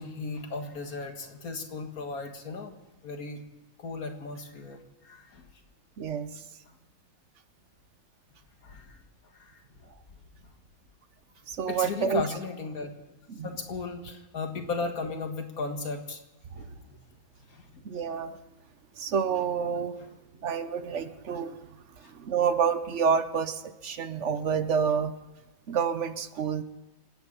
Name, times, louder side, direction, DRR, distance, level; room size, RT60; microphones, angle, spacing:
voice 1, 0.0-2.7 3.0-3.4 3.8-4.8 5.0-5.5 8.6-9.0 9.3-9.6 11.7-12.9 13.4-16.2 16.6-16.7 17.5-17.6 20.0-20.1, left 4 dB, 90° left, 4 dB, 2.3 m, -35 dB
voice 2, 6.0-6.3 11.5-12.2 13.3-13.5 16.5-16.6 17.8-18.4 19.0-20.0 20.4-21.6 22.0-25.1 25.7-26.6, right 6 dB, 60° right, 11 dB, 1.1 m, -28 dB
28.0 x 9.4 x 5.5 m, 1.0 s
omnidirectional pair, 1.5 m